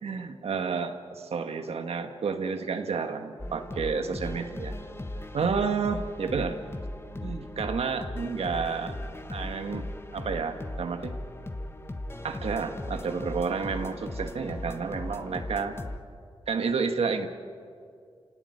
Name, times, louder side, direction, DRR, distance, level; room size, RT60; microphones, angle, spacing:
voice 1, 0.0-4.8 5.3-6.6 7.2-9.0 9.3-11.1 12.2-15.8 16.5-17.3, right 5 dB, 85° right, 6 dB, 1.7 m, -30 dB
sound 1, 3.4-16.0, left 1 dB, 25° left, 1.4 m, -37 dB
29.5 x 17.5 x 9.6 m, 2.3 s
wide cardioid pair, 80°, 10 cm